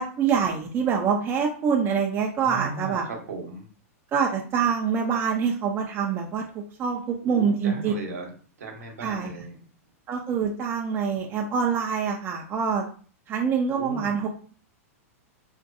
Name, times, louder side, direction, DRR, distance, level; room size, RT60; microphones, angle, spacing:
voice 1, 0.0-3.0 4.1-7.9 9.0-9.3 10.1-12.8 13.3-14.3, right 6 dB, 25° right, 0 dB, 0.4 m, -25 dB
voice 2, 2.4-3.7 7.2-9.6 13.7-14.3, right 4 dB, 85° right, 1 dB, 0.9 m, -37 dB
2.5 x 2.2 x 2.6 m, 0.42 s
hypercardioid pair, 115°, 8 cm